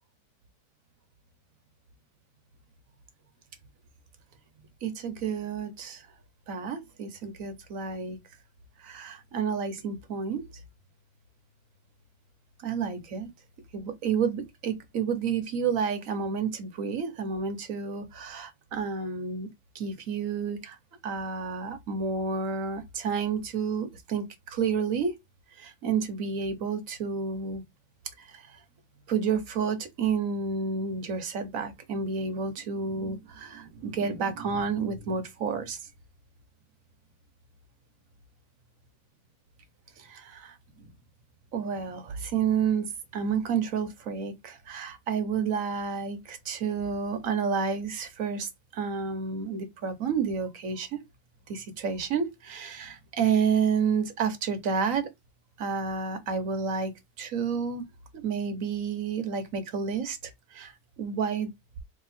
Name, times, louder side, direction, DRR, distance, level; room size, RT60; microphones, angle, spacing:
voice 1, 4.8-6.1 6.5-8.2 8.8-10.4 12.6-13.3 13.7-19.5 19.7-20.8 21.0-25.1 25.6-27.6 28.2-28.6 29.1-35.8 40.0-40.9 41.5-51.0 51.5-55.1 55.6-56.9 57.2-57.8 58.1-61.5, right 6 dB, 65° right, 1.2 m, -30 dB
3.2 x 2.9 x 4.1 m
omnidirectional pair, 1.6 m